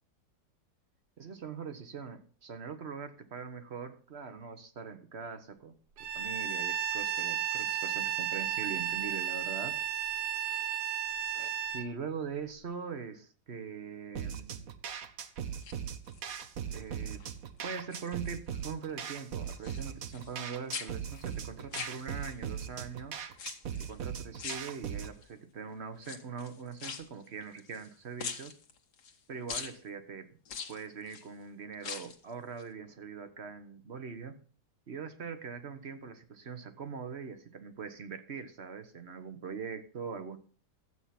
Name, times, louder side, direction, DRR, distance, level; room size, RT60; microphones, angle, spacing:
voice 1, 1.2-5.7 6.1-9.8 11.3-14.7 16.7-17.2 17.6-23.2 23.8-28.6 29.3-30.3 30.7-34.4 34.9-40.4, right 6 dB, 45° right, 10 dB, 1.3 m, -42 dB
Bowed string instrument, 6.0-11.9, right 10 dB, 85° right, 1.5 m, -33 dB
sound 1, 14.2-25.2, right 8 dB, 60° right, 1.4 m, -39 dB
sound 2, 15.5-16.4 16.9-17.3 17.6-18.6 18.9-20.4 20.7-22.5 23.3-24.0 24.4-25.2 26.0-27.9 28.2-29.2 29.5-29.8 30.5-31.3 31.7-32.2 32.6-32.7, left 6 dB, 80° left, 1.9 m, -43 dB
13.0 x 8.1 x 5.8 m, 0.41 s
omnidirectional pair, 1.7 m